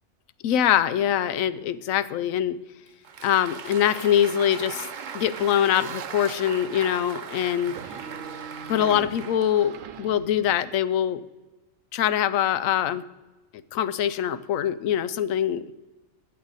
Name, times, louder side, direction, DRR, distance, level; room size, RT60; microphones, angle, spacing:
voice 1, 0.4-2.6 3.2-4.9 5.1-7.8 8.7-11.2 11.9-13.0 13.7-15.7, left 10 dB, 80° left, 15 dB, 1.0 m, -23 dB
Applause, 2.9-10.0, right 7 dB, 50° right, 0.6 m, -39 dB
sound 1, 5.6-6.6 7.6-10.7, right 6 dB, 70° right, 1.1 m, -40 dB
14.5 x 8.7 x 4.1 m, 1.1 s
omnidirectional pair, 1.4 m